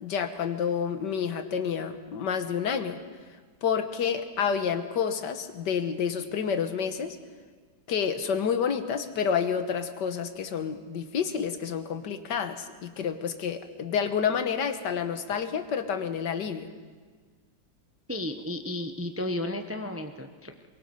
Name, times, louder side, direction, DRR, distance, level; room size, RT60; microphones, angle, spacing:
voice 1, 0.0-3.0 3.6-7.2 7.9-16.7, left 7 dB, 75° left, 8 dB, 1.8 m, -29 dB
voice 2, 18.1-20.7, left 1 dB, 10° right, 6 dB, 0.6 m, -33 dB
23.5 x 22.5 x 5.4 m, 1.5 s
omnidirectional pair, 1.9 m